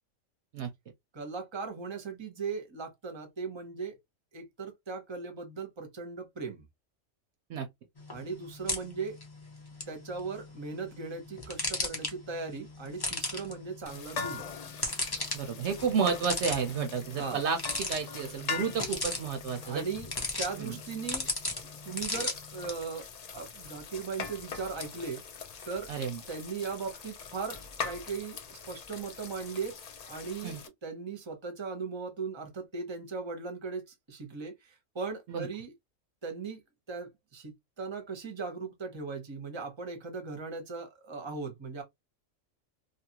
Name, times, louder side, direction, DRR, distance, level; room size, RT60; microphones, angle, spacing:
voice 1, 1.1-4.0 4.3-6.7 8.1-9.2 9.9-14.5 17.2-17.4 19.6-20.1 20.4-21.3 21.8-23.1 23.3-25.2 25.6-25.9 26.3-29.8 30.1-35.7 36.2-36.6 36.9-41.8, right 4 dB, 25° right, 0.8 m, -38 dB
sound 1, 8.0-22.7, left 2 dB, 20° left, 0.8 m, -38 dB
sound 2, 13.9-30.7, left 5 dB, 60° left, 0.4 m, -42 dB
voice 2, 15.3-19.8 20.6-20.8 25.9-26.2 30.4-30.6 35.3-35.5, right 6 dB, 65° right, 0.8 m, -31 dB
2.7 x 2.5 x 2.8 m
omnidirectional pair, 1.3 m